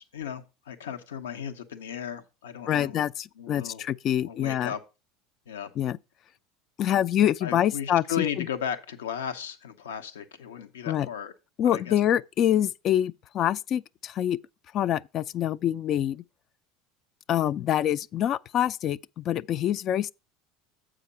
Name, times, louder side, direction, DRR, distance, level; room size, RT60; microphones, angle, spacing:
voice 1, 0.0-3.0 3.4-3.8 4.2-4.8 5.5-5.7 7.4-11.3 11.6-12.0, left 8 dB, 90° left, 0.8 m, -35 dB
voice 2, 2.7-4.7 5.8-6.0 6.8-8.5 10.9-11.1 11.6-14.4 14.7-16.2 17.3-20.1, left 11 dB, 50° left, 0.3 m, -26 dB
7.5 x 5.0 x 5.4 m
hypercardioid pair, 90°, 0 cm